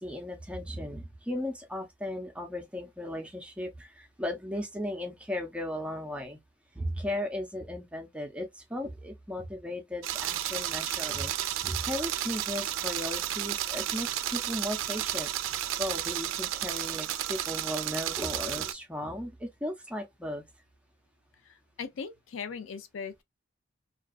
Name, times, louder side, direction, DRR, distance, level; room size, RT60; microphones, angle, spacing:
voice 1, 0.0-6.4 6.8-11.3 11.6-15.5 15.8-20.4, left 1 dB, 5° right, 0.5 m, -36 dB
sound 1, 10.0-18.7, right 12 dB, 80° right, 0.3 m, -32 dB
voice 2, 21.4-23.2, left 6 dB, 80° left, 0.4 m, -39 dB
2.4 x 2.3 x 2.3 m
head